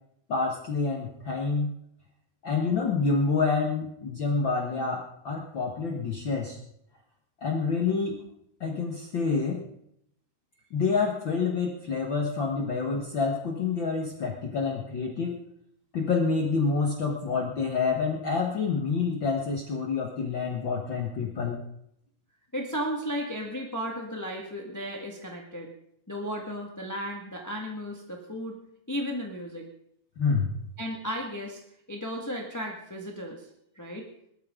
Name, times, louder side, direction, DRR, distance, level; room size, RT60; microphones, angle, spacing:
voice 1, 0.3-1.7 2.4-6.6 7.4-8.2 8.6-9.6 10.7-15.4 15.9-21.6 30.2-30.5, left 4 dB, 50° left, 0 dB, 1.9 m, -27 dB
voice 2, 22.5-25.7 26.1-28.5 28.9-29.7 30.8-31.6 31.9-33.5 33.7-34.0, equal, 10° left, 0 dB, 1.0 m, -34 dB
19.5 x 13.0 x 3.8 m, 0.74 s
omnidirectional pair, 3.3 m